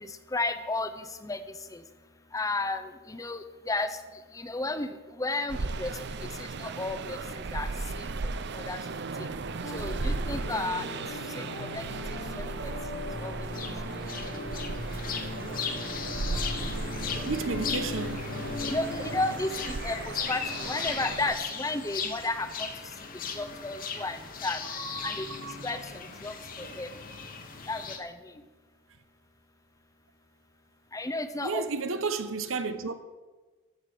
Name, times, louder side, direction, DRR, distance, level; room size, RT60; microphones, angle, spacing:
voice 1, 0.3-1.4 1.7-1.8 2.3-4.0 4.3-5.9 6.4-7.2 7.5-7.7 8.0-8.1 8.5-8.8 9.7-10.9 11.4-11.9 13.2-13.3 18.6-22.7 23.4-24.6 25.0-25.3 25.6-26.3 26.8-26.9 27.7-28.1 30.9-31.6, left 2 dB, 15° left, 0.7 m, -33 dB
sound 1, 5.5-21.4, right 3 dB, 55° right, 0.6 m, -36 dB
sound 2, 9.6-19.4, left 2 dB, 90° left, 3.5 m, -40 dB
sound 3, 13.5-28.0, left 5 dB, 40° left, 1.3 m, -37 dB
voice 2, 17.2-18.3 24.7-25.5 26.6-26.8 31.4-32.9, right 4 dB, 70° right, 0.9 m, -34 dB
15.0 x 7.1 x 6.5 m
head